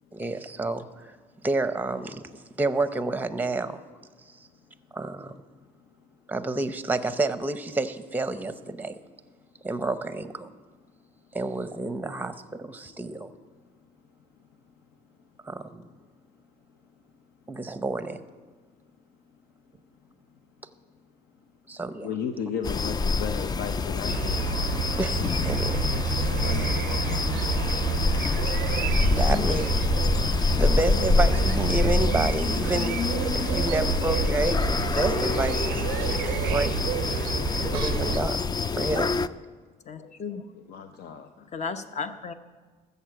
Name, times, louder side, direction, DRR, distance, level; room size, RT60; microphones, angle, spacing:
voice 1, 0.1-1.2 1.4-2.2 2.6-3.8 4.9-5.4 6.3-9.0 9.6-10.5 11.3-13.3 15.5-15.9 17.5-18.2 21.7-22.1 25.0-25.9 29.2-29.8 30.6-33.0 33.3-36.8 37.6-38.4 38.8-39.2, right 2 dB, 10° right, 11 dB, 0.7 m, -29 dB
voice 2, 22.0-24.5 26.3-28.0 40.7-41.5, left 7 dB, 70° left, 7 dB, 0.7 m, -35 dB
sound 1, 22.6-39.3, left 4 dB, 25° left, 0.3 m, -26 dB
sound 2, 24.1-38.2, right 14 dB, 75° right, 0.4 m, -30 dB
voice 3, 29.1-29.7 30.7-31.0 39.8-40.5 41.5-42.3, left 5 dB, 40° left, 10 dB, 0.9 m, -35 dB
14.5 x 6.9 x 7.7 m, 1.4 s
cardioid pair, 110°, 17 cm